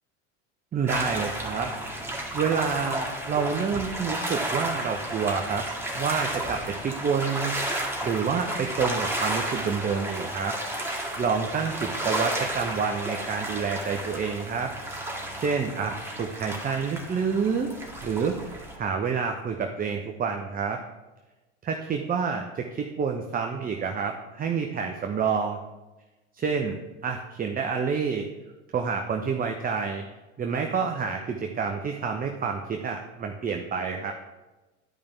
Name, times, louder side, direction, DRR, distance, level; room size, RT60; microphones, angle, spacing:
voice 1, 0.7-1.7 2.3-5.7 5.9-7.5 8.0-10.5 11.2-14.7 15.4-17.7 18.0-18.3 18.8-20.8 21.6-25.6 26.4-28.3 28.7-30.0 30.4-34.1, right 6 dB, 25° right, 4 dB, 0.8 m, -28 dB
sound 1, 0.9-18.8, right 1 dB, 5° right, 1.9 m, -32 dB
12.0 x 5.1 x 3.4 m, 1.1 s
hypercardioid pair, 85°, 36 cm